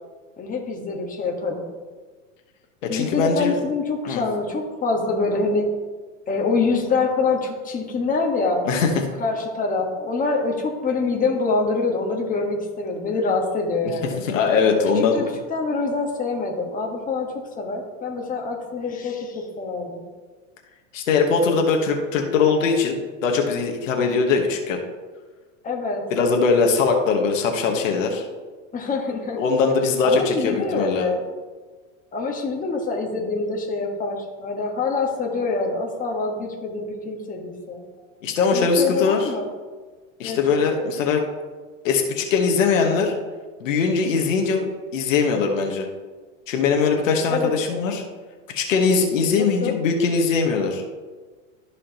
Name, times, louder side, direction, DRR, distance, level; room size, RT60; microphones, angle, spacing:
voice 1, 0.4-1.6 2.9-5.7 6.3-8.6 9.2-14.2 15.0-20.0 25.6-26.0 28.7-29.4 30.0-31.2 32.1-37.8 38.5-39.4 40.2-40.6 47.3-48.0 49.4-49.8, left 3 dB, 20° left, 0 dB, 1.5 m, -25 dB
voice 2, 2.8-3.5 4.1-4.2 8.6-8.9 14.2-15.2 20.9-24.8 26.1-28.2 29.4-31.1 38.2-39.3 40.2-41.2 41.8-43.1 43.6-44.7 44.9-45.9 46.5-48.0 48.5-50.8, left 5 dB, 85° left, 2 dB, 1.4 m, -21 dB
13.0 x 4.9 x 3.0 m, 1.4 s
hypercardioid pair, 110°, 38 cm